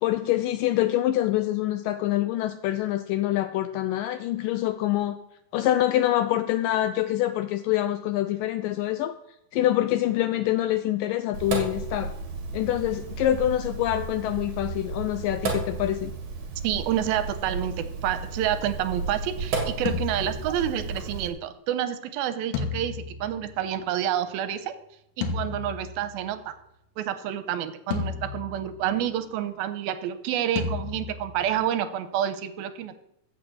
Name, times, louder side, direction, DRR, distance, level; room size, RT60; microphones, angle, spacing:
voice 1, 0.0-5.2 5.5-9.2 9.5-12.1 12.5-16.1, left 13 dB, 80° left, 10 dB, 2.0 m, -25 dB
Sink (filling or washing), 11.3-21.3, right 4 dB, 55° right, 3.1 m, -33 dB
voice 2, 16.6-24.7 25.2-26.5 27.0-33.0, right 10 dB, 85° right, 11 dB, 2.6 m, -28 dB
sound 1, 19.9-21.0 22.5-24.1 25.2-26.4 27.9-29.1 30.6-31.7, left 5 dB, 65° left, 2.3 m, -33 dB
14.5 x 5.9 x 7.7 m, 0.79 s
omnidirectional pair, 4.3 m